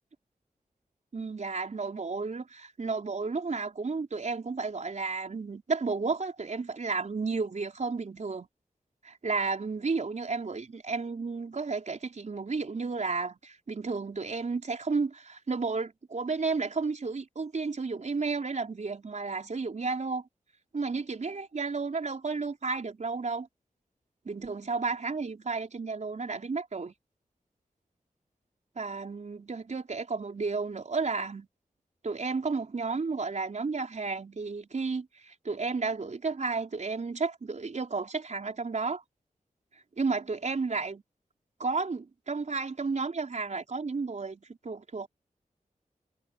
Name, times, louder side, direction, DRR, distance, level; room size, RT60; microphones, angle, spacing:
voice 1, 1.1-8.5 9.0-20.3 20.7-23.5 24.2-26.9 28.8-31.5 32.0-39.0 40.0-41.0 41.6-45.1, right 4 dB, 55° right, 4.7 m, -32 dB
wide cardioid pair, 95°, 15 cm